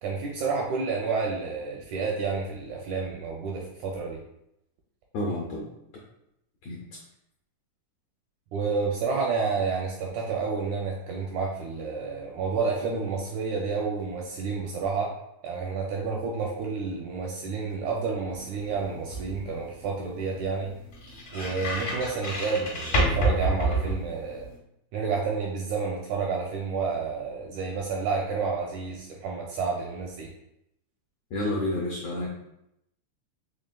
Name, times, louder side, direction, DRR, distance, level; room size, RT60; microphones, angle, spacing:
voice 1, 0.0-4.2 8.5-15.1 15.4-20.7 21.3-24.5 24.9-30.3, right 4 dB, 80° right, -1 dB, 1.7 m, -30 dB
voice 2, 5.1-5.7 6.6-6.8 31.3-32.3, left 1 dB, 75° left, -4 dB, 1.6 m, -29 dB
sound 1, 18.3-24.6, right 1 dB, 50° left, 1.0 m, -30 dB
5.2 x 3.3 x 2.2 m, 0.82 s
omnidirectional pair, 3.8 m